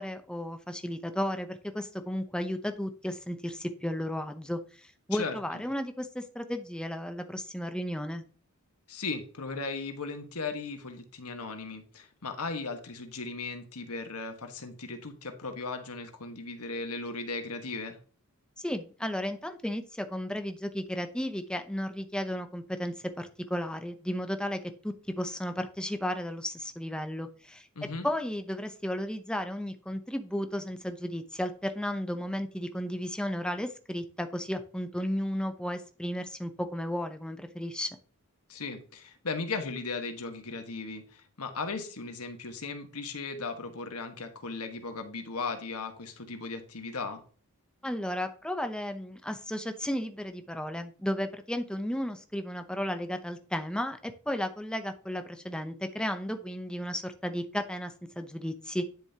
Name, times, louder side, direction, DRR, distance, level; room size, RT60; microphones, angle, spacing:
voice 1, 0.0-8.2 18.6-27.7 28.0-37.9 47.8-58.8, equal, 5° left, 7 dB, 0.7 m, -34 dB
voice 2, 8.9-18.0 27.7-28.1 38.5-47.2, left 4 dB, 90° left, 6 dB, 1.5 m, -37 dB
10.5 x 7.0 x 2.9 m, 0.40 s
head